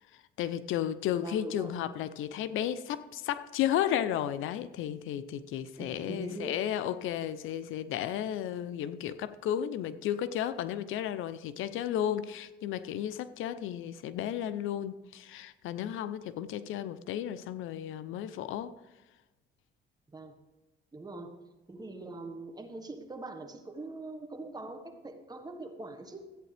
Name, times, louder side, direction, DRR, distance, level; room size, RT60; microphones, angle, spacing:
voice 1, 0.4-18.7, left 10 dB, 85° left, 0.5 m, -33 dB
voice 2, 1.2-1.7 5.8-6.6 20.1-20.3 20.9-21.4 21.7-26.2, right 2 dB, 20° right, 1.4 m, -42 dB
13.5 x 8.8 x 3.4 m
cardioid pair, 90°, 20 cm